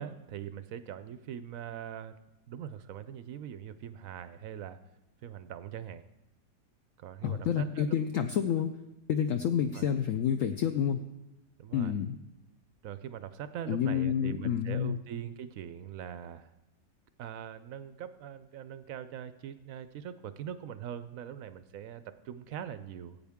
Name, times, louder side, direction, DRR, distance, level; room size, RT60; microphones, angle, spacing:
voice 1, 0.0-2.1 2.5-4.8 5.2-6.0 7.0-8.0 9.7-9.9 11.6-11.9 12.8-16.5 17.2-23.2, right 9 dB, 70° right, 12 dB, 0.8 m, -42 dB
voice 2, 7.2-8.7 9.1-11.0 11.7-12.2 13.7-15.0, left 8 dB, 70° left, 7 dB, 0.8 m, -29 dB
17.0 x 8.7 x 3.6 m, 0.96 s
omnidirectional pair, 1.8 m